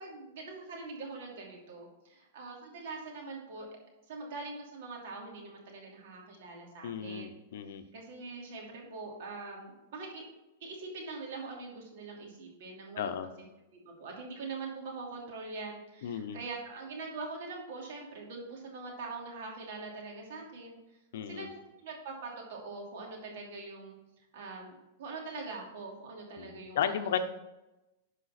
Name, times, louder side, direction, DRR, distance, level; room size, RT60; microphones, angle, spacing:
voice 1, 0.0-3.7 4.1-7.3 7.9-10.2 10.6-13.2 13.7-20.8 21.3-23.9 24.3-27.0, right 3 dB, 65° right, 0 dB, 2.8 m, -43 dB
voice 2, 6.8-7.8 13.0-13.3 16.0-16.4 21.1-21.5 26.4-27.2, left 9 dB, 70° left, 9 dB, 0.8 m, -34 dB
11.5 x 5.0 x 4.3 m, 0.98 s
supercardioid pair, 145°, 0 cm